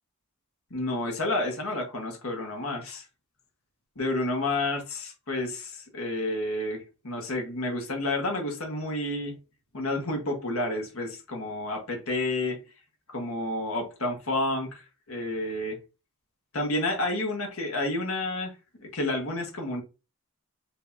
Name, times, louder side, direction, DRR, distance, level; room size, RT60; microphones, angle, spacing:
voice 1, 0.7-3.0 3.9-9.3 9.7-12.6 13.1-15.8 16.5-18.5 18.8-19.8, left 2 dB, 85° left, 1.7 m, -30 dB
5.2 x 3.7 x 2.8 m
head